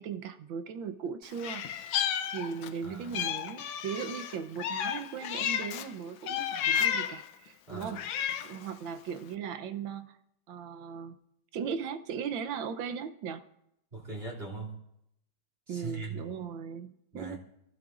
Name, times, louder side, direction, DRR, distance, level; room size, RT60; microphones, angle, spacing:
voice 1, 0.0-1.7 1.9-10.2 10.5-11.1 11.5-13.4 15.7-17.4, right 7 dB, 65° right, 9 dB, 1.5 m, -38 dB
Meow, 1.4-2.8 3.1-5.9 6.3-7.3 7.8-8.6, left 9 dB, 70° left, 1.4 m, -32 dB
voice 2, 2.8-3.2 7.7-8.0 13.9-14.8 15.7-16.2 17.1-17.4, right 3 dB, 25° right, -2 dB, 3.1 m, -40 dB
24.5 x 15.5 x 2.5 m, 0.80 s
omnidirectional pair, 2.4 m